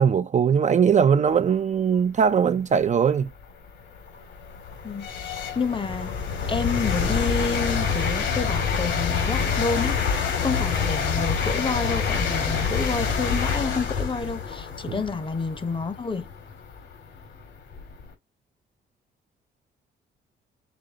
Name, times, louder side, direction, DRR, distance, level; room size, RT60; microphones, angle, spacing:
voice 1, 0.0-3.3 14.9-15.0, right 7 dB, 35° right, 0.4 m, -20 dB
sound 1, 2.6-2.7 3.3-18.1, left 6 dB, 70° left, 1.9 m, -27 dB
voice 2, 4.8-6.1 6.5-16.3, left 4 dB, 25° left, 0.8 m, -29 dB
5.2 x 2.4 x 3.7 m
cardioid pair, 90°, 20 cm